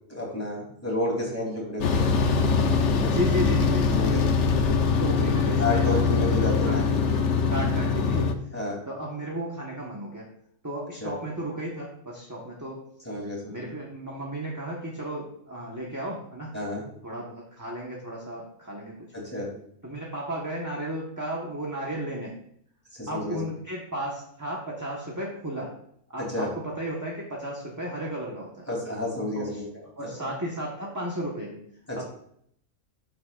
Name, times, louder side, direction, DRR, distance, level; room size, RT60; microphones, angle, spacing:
voice 1, 0.1-2.1 2.9-3.2 3.9-4.4 5.6-7.3 8.5-8.9 11.0-11.1 13.0-13.7 16.5-16.9 19.1-19.6 22.9-23.4 26.2-26.5 28.7-30.3 31.9-32.0, left 1 dB, 10° left, -4 dB, 3.2 m, -31 dB
sound 1, 1.8-8.3, left 5 dB, 65° left, 1.1 m, -23 dB
voice 2, 3.1-6.1 6.6-6.8 7.5-8.3 8.9-10.3 10.6-12.8 13.5-16.5 17.0-19.1 19.8-22.4 23.1-25.7 26.1-28.7 29.3-29.6 30.0-31.6 31.9-32.0, right 1 dB, 15° right, -3 dB, 1.3 m, -34 dB
12.5 x 6.9 x 2.5 m, 0.68 s
omnidirectional pair, 1.4 m